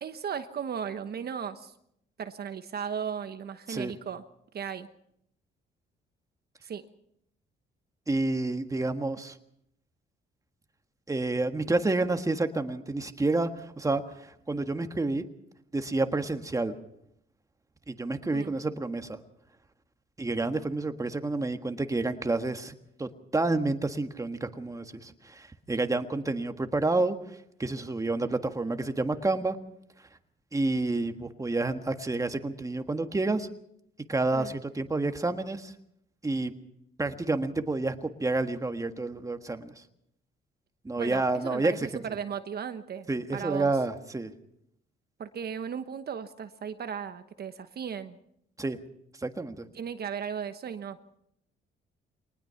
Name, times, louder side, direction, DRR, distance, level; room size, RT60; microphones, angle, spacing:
voice 1, 0.0-1.7 2.2-4.2 4.5-4.9 6.6-6.8 18.3-18.5 34.3-34.5 41.0-43.1 43.3-43.7 45.2-48.2 49.7-51.0, right 7 dB, 50° right, 9 dB, 1.1 m, -36 dB
voice 2, 8.1-9.4 11.1-15.2 15.7-16.8 17.9-19.2 20.2-27.2 27.6-29.6 30.5-33.5 34.1-35.7 36.2-36.5 37.0-39.8 40.8-42.0 43.1-44.3 48.6-48.8 49.2-49.7, right 2 dB, 15° right, 8 dB, 1.6 m, -29 dB
23.0 x 19.5 x 5.8 m, 0.74 s
cardioid pair, 90°, 20 cm